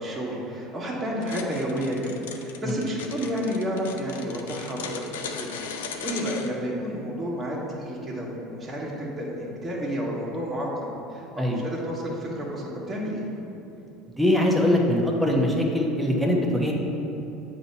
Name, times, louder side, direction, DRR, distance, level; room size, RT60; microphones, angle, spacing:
voice 1, 0.0-2.0 2.3-5.5 5.8-10.7 11.1-13.3, equal, 25° right, -5 dB, 1.5 m, -31 dB
sound 1, 1.2-6.5, left 6 dB, 90° left, 0.4 m, -37 dB
voice 2, 14.2-16.7, left 1 dB, 5° right, -1 dB, 1.1 m, -22 dB
7.8 x 2.8 x 5.5 m, 3.0 s
supercardioid pair, 90°, 0 cm